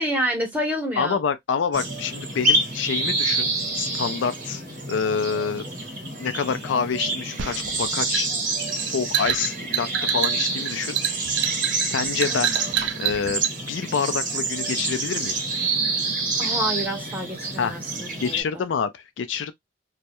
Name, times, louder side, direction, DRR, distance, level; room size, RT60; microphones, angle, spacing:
voice 1, 0.0-1.2 16.4-18.7, equal, 10° right, 0.9 m, -28 dB
voice 2, 1.0-4.6 4.9-5.7 6.2-8.3 8.9-11.0 11.8-12.5 12.9-13.4 13.7-15.4 17.6-17.7 18.2-19.5, left 6 dB, 75° left, 0.4 m, -27 dB
sound 1, 1.7-18.4, right 2 dB, 45° right, 0.9 m, -27 dB
sound 2, 7.4-13.6, right 11 dB, 70° right, 0.4 m, -27 dB
2.3 x 2.0 x 2.8 m
head